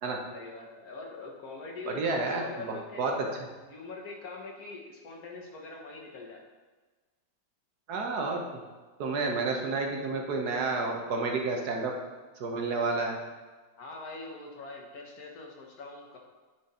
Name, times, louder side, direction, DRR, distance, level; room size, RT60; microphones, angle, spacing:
voice 1, 0.3-3.4 3.7-6.4 13.8-16.2, left 3 dB, 55° left, 0 dB, 1.8 m, -43 dB
voice 2, 1.9-3.3 7.9-8.6 9.0-11.9 12.4-13.2, right 3 dB, 65° right, 2 dB, 1.5 m, -30 dB
9.9 x 5.4 x 4.3 m, 1.3 s
omnidirectional pair, 1.9 m